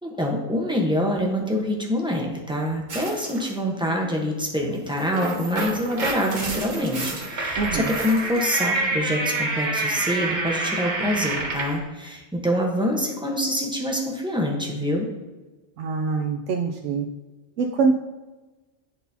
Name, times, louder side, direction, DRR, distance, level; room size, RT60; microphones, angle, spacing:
voice 1, 0.0-15.1, equal, 5° right, -1 dB, 0.9 m, -25 dB
sound 1, 2.9-3.5 4.9-11.8, right 2 dB, 45° right, 1.0 m, -28 dB
voice 2, 7.6-7.9 15.8-17.1 17.6-17.9, right 4 dB, 85° right, 2 dB, 0.9 m, -24 dB
10.5 x 4.0 x 2.8 m, 1.2 s
omnidirectional pair, 1.2 m